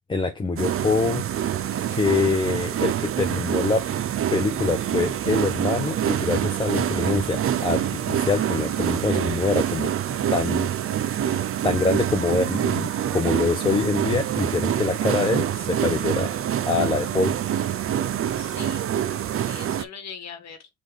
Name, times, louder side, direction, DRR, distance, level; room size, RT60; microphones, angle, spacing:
voice 1, 0.1-1.2 1.9-3.8 4.3-9.9 10.3-10.7 10.9-11.2 11.6-16.3 16.7-17.3, left 4 dB, 15° left, 0.6 m, -25 dB
sound 1, 0.6-19.8, right 10 dB, 45° right, 0.5 m, -26 dB
voice 2, 1.7-2.1 18.4-18.9 19.3-20.7, left 6 dB, 60° left, 1.3 m, -41 dB
6.1 x 2.5 x 3.4 m
cardioid pair, 90°, 30 cm